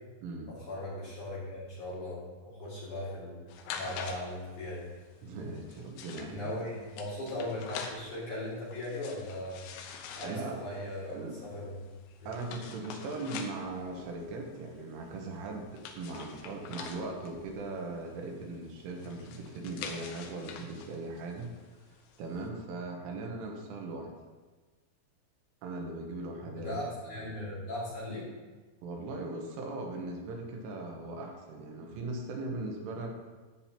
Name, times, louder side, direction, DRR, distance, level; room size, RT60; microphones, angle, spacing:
voice 1, 0.5-3.4 3.8-4.9 6.3-9.6 10.1-11.8 12.2-12.3 26.4-28.3, left 1 dB, 45° left, -8 dB, 3.1 m, -38 dB
sound 1, 3.5-22.4, left 6 dB, 75° left, 2.9 m, -47 dB
voice 2, 5.2-6.6 10.2-10.6 11.1-11.4 12.3-21.5 22.2-24.1 25.6-26.8 27.0-27.4 28.8-33.1, right 2 dB, 80° right, 1 dB, 3.6 m, -39 dB
13.5 x 8.7 x 2.9 m, 1.3 s
omnidirectional pair, 5.8 m